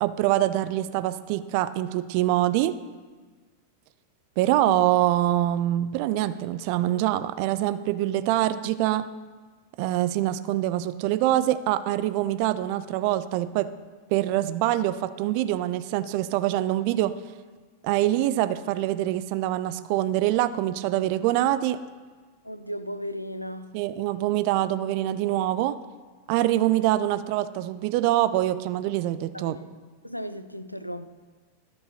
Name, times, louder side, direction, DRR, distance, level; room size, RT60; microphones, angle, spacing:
voice 1, 0.0-2.7 4.4-9.0 9.8-13.7 14.1-17.1 17.8-21.8 23.7-25.8 26.3-29.6, right 14 dB, 45° right, 0.4 m, -24 dB
voice 2, 22.4-23.7 29.3-29.7 30.0-31.1, equal, 90° left, 0.4 m, -35 dB
13.0 x 4.7 x 4.2 m
figure-of-eight pair, 90°, 0 cm